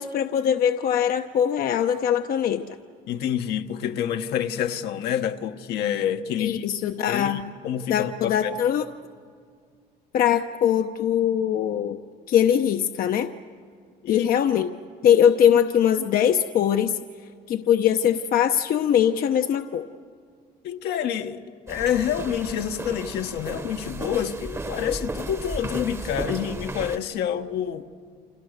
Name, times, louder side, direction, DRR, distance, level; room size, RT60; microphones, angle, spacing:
voice 1, 0.0-2.6 6.4-7.4 7.9-8.9 10.1-12.0 12.3-13.3 14.1-14.7 15.0-17.0 17.5-19.9, left 9 dB, 60° left, 0.8 m, -21 dB
voice 2, 3.1-6.6 7.1-8.5 14.0-14.3 20.6-27.8, left 9 dB, 75° left, 1.2 m, -28 dB
sound 1, 21.7-27.0, right 2 dB, 15° right, 1.0 m, -34 dB
29.5 x 25.5 x 6.6 m
cardioid pair, 110°, 17 cm